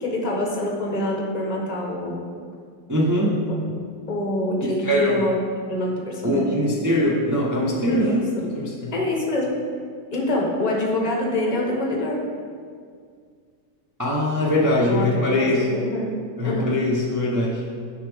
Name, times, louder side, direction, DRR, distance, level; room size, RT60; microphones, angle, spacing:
voice 1, 0.0-2.2 4.1-5.4 5.7-6.5 7.9-8.5 8.9-9.5 10.1-12.2 14.5-14.6 14.9-16.1 16.4-16.7, left 1 dB, 25° left, -2 dB, 1.0 m, -26 dB
voice 2, 2.9-3.4 4.6-5.2 6.2-8.2 8.5-8.9 14.0-15.7 16.4-17.7, left 1 dB, 25° right, -5 dB, 0.4 m, -22 dB
9.4 x 5.6 x 3.5 m, 2.1 s
omnidirectional pair, 2.0 m